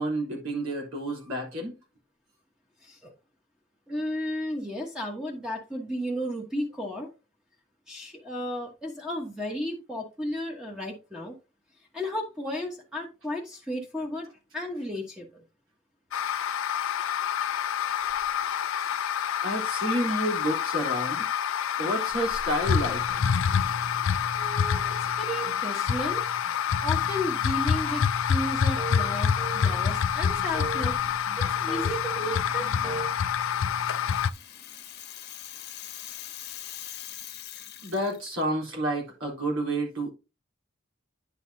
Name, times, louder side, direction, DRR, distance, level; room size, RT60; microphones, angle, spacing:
voice 1, 0.0-1.7 19.4-21.3 21.8-23.2 37.8-40.1, right 1 dB, 80° right, 3.5 m, -30 dB
voice 2, 3.9-7.1 7.9-11.3 11.9-14.3 14.5-15.4 24.3-26.2 26.8-28.0 28.3-33.1, left 1 dB, 5° right, 1.2 m, -34 dB
sound 1, 16.1-34.3, left 8 dB, 70° left, 0.4 m, -27 dB
sound 2, 26.7-27.2 27.8-28.2 28.8-29.9 30.5-31.0 31.7-32.1 32.8-33.1, right 2 dB, 30° right, 3.1 m, -38 dB
Rattle (instrument), 33.7-38.4, left 12 dB, 50° left, 1.0 m, -42 dB
9.9 x 5.8 x 2.7 m
head